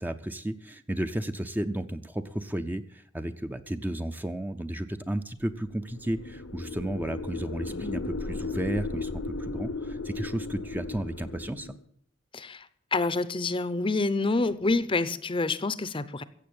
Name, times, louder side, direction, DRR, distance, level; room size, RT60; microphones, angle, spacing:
voice 1, 0.0-11.7, right 1 dB, 10° right, 9 dB, 0.6 m, -33 dB
sound 1, 5.7-11.8, left 3 dB, 80° left, 1.0 m, -36 dB
voice 2, 12.3-12.7 12.9-16.2, left 3 dB, 25° left, 15 dB, 0.7 m, -27 dB
15.5 x 7.7 x 8.6 m, 0.64 s
head